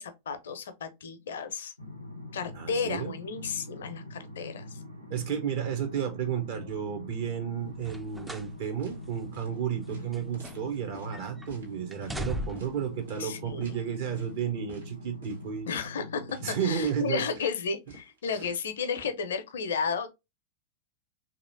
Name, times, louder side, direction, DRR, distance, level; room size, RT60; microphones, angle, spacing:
voice 1, 0.0-1.7 2.3-4.8 9.9-10.2 13.2-13.8 15.7-20.1, left 5 dB, 60° left, 0.6 m, -33 dB
sound 1, 1.8-16.8, left 2 dB, 90° right, 0.6 m, -44 dB
voice 2, 2.5-3.1 5.1-15.7 16.4-17.2, right 8 dB, 55° right, 0.7 m, -32 dB
sound 2, 7.8-8.6 8.9-9.1 9.8-10.9 11.1-11.5 11.9-12.8 13.7-13.8, equal, 5° right, 0.3 m, -38 dB
sound 3, 8.3-8.5 8.8-9.0 9.3-9.5 9.9-11.1 11.5-11.7 12.0-12.2 12.5-12.7 13.1-13.3 13.6-13.8 14.1-14.4 14.7-14.9 15.2-15.4 15.7-16.0 16.3-16.5 16.8-17.0 17.3-17.5 17.9-19.1, equal, 70° right, 1.1 m, -49 dB
3.0 x 2.8 x 2.6 m
figure-of-eight pair, 90°, 0 cm